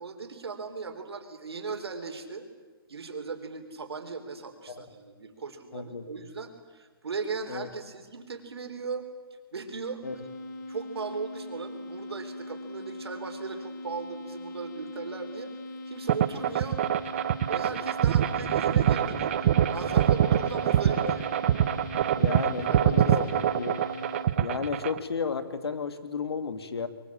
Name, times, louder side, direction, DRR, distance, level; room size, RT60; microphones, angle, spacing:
voice 1, 0.0-2.5 2.9-9.1 9.5-10.3 10.7-15.5 15.8-16.8 17.5-21.3 22.3-23.4, right 4 dB, 90° right, 6 dB, 4.1 m, -38 dB
voice 2, 5.7-6.1 7.5-7.7 10.0-10.2 21.0-21.1 22.2-23.9 24.4-26.9, left 5 dB, 85° left, 11 dB, 2.2 m, -33 dB
sound 1, 10.0-24.3, left 1 dB, 45° left, 5.2 m, -41 dB
sound 2, 16.1-25.0, right 10 dB, 30° right, 0.8 m, -24 dB
23.5 x 23.0 x 8.7 m, 1.4 s
hypercardioid pair, 170°, 13 cm